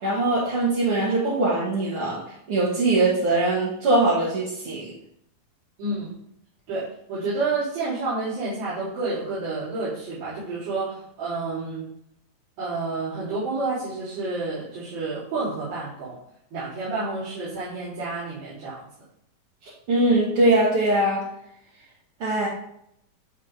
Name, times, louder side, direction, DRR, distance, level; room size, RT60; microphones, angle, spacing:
voice 1, 0.0-2.2 2.5-4.9 19.9-21.2 22.2-22.5, right 2 dB, 45° right, -7 dB, 2.2 m, -21 dB
voice 2, 5.8-6.1 6.7-6.8 7.1-11.9 12.6-16.2 16.5-18.8, right 3 dB, 70° right, -15 dB, 6.0 m, -29 dB
12.0 x 4.1 x 5.1 m, 0.74 s
omnidirectional pair, 4.2 m